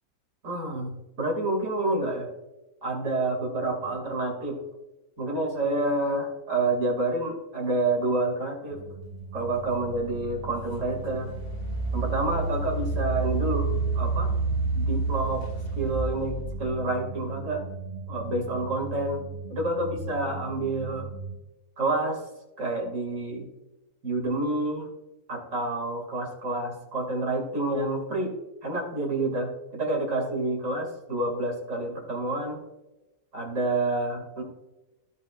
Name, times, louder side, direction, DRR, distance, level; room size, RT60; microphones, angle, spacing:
voice 1, 0.4-2.3 2.8-4.6 5.2-8.8 9.3-11.3 11.9-14.3 14.7-15.4 15.7-17.6 18.1-19.2 19.5-21.1 21.8-22.2 22.6-23.5 24.0-24.9 25.3-28.3 28.6-32.6 33.3-34.4, right 2 dB, 50° right, 1 dB, 2.6 m, -28 dB
sound 1, 8.7-21.4, right 4 dB, 25° right, 0.7 m, -39 dB
Engine, 10.0-10.1 10.7-16.6, right 3 dB, 45° left, 2.2 m, -29 dB
16.0 x 5.5 x 2.4 m, 1.0 s
omnidirectional pair, 1.8 m